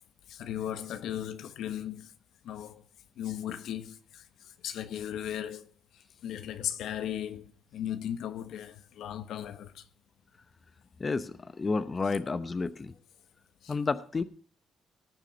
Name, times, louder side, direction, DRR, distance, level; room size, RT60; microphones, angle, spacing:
voice 1, 0.3-2.1 2.4-2.8 3.2-4.2 4.6-5.7 6.2-9.8 13.6-13.8, left 10 dB, 80° left, 1.3 m, -37 dB
voice 2, 11.0-12.9 13.7-14.2, left 4 dB, 30° left, 0.8 m, -31 dB
18.5 x 7.3 x 5.2 m
cardioid pair, 90°, 0 cm